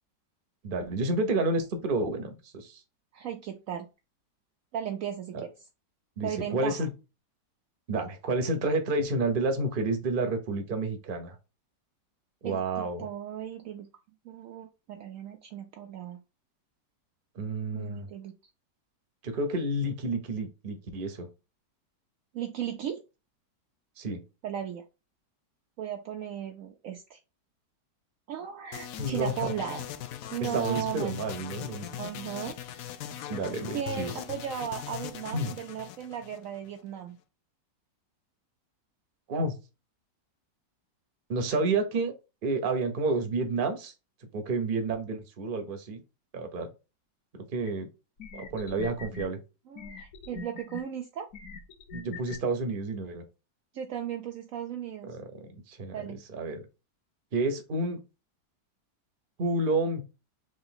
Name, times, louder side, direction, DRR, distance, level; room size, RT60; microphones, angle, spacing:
voice 1, 0.6-2.8 5.3-5.4 6.2-6.9 7.9-11.4 12.4-13.1 17.3-18.1 19.2-21.3 24.0-24.2 29.0-29.5 30.4-31.9 33.3-34.1 35.3-35.5 39.3-39.5 41.3-42.2 42.4-43.9 44.3-46.0 46.3-46.7 47.3-47.9 48.3-49.4 51.9-53.2 55.0-56.6 57.3-58.0 59.4-60.0, right 2 dB, 45° right, 6 dB, 0.7 m, -30 dB
voice 2, 3.1-3.9 4.7-5.5 6.2-6.8 12.4-13.9 14.2-16.2 17.7-18.4 22.3-23.0 24.4-24.8 25.8-27.2 28.3-29.8 30.3-31.2 32.0-32.6 33.7-37.2 49.7-51.3 53.7-55.1 55.9-56.2, right 9 dB, 80° right, 4 dB, 0.7 m, -36 dB
sound 1, 28.7-36.8, left 11 dB, 75° left, 0.8 m, -40 dB
sound 2, 47.7-47.8 48.2-49.3 49.8-50.8 51.3-52.4, left 4 dB, 55° left, 1.1 m, -42 dB
3.9 x 3.1 x 3.8 m, 0.29 s
omnidirectional pair, 1.9 m